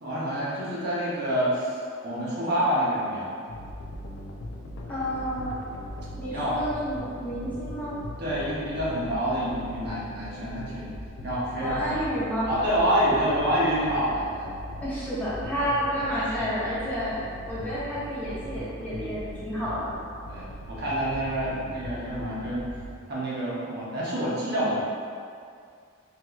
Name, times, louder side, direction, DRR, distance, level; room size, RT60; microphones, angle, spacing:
voice 1, 0.0-1.8 2.0-3.3 6.3-6.6 8.2-10.9 11.2-11.9 12.5-14.5 15.9-16.1 20.3-22.7 23.1-24.8, equal, 55° right, -8 dB, 0.8 m, -27 dB
sound 1, 3.5-22.9, equal, 75° left, 0.4 m, -40 dB
voice 2, 4.9-5.5 6.2-8.0 11.6-12.5 14.8-17.2 17.5-19.9, equal, 10° left, -11 dB, 0.7 m, -30 dB
3.5 x 2.8 x 2.3 m, 2.3 s
head